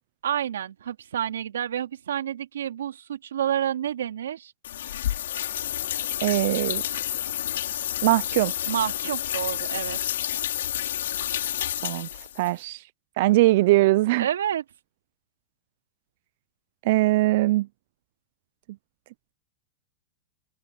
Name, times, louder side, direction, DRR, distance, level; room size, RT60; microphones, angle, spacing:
voice 1, 0.2-4.5 8.7-10.0 14.2-14.6, right 10 dB, 85° right, 2.8 m, -29 dB
sound 1, 4.6-12.5, left 11 dB, 80° left, 5.0 m, -30 dB
voice 2, 6.2-6.8 8.0-8.5 11.8-12.1 12.4-12.8 13.2-14.3 16.9-17.7, right 18 dB, 60° right, 0.5 m, -21 dB
hypercardioid pair, 120°, 0 cm